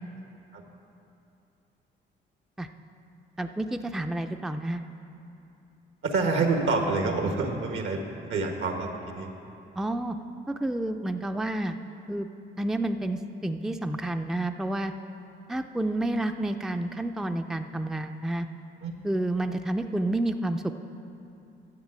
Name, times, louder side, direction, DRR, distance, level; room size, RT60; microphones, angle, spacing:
voice 1, 3.4-4.8 9.8-10.2 10.5-11.8 12.1-12.3 12.6-14.9 15.5-18.5 19.0-20.7, right 1 dB, ahead, 7 dB, 0.4 m, -29 dB
voice 2, 6.0-8.0 8.3-9.3 18.8-18.9, right 3 dB, 75° right, 3 dB, 1.5 m, -27 dB
10.5 x 7.5 x 7.4 m, 2.7 s
cardioid pair, 90°, 20 cm